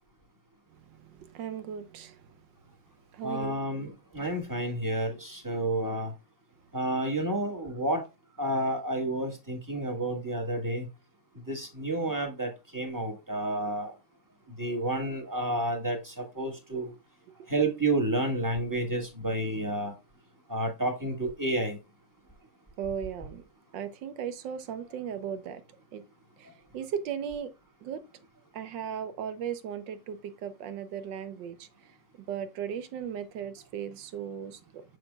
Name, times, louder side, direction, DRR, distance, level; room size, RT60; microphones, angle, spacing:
voice 1, 0.9-2.2 3.1-3.6 22.8-23.4 23.7-25.6 25.9-26.0 26.4-26.5 26.7-27.5 27.8-28.0 28.5-31.7 32.3-34.8, right 8 dB, 85° right, 1.5 m, -36 dB
voice 2, 3.2-6.1 6.7-8.0 8.4-10.8 11.5-13.9 14.6-16.9 17.5-19.9 20.5-21.8, right 1 dB, 10° right, 1.5 m, -30 dB
6.5 x 6.3 x 2.3 m
omnidirectional pair, 1.9 m